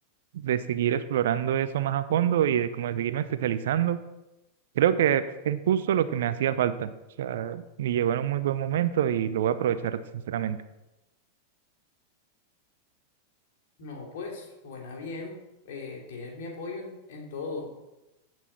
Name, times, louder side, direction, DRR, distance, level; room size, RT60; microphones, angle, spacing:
voice 1, 0.3-4.0 4.8-6.9 7.2-10.6, right 10 dB, 60° right, 13 dB, 0.7 m, -26 dB
voice 2, 13.8-15.4 15.6-17.9, left 3 dB, 55° left, 1 dB, 2.9 m, -38 dB
16.0 x 6.3 x 4.4 m, 0.95 s
figure-of-eight pair, 90°, 0 cm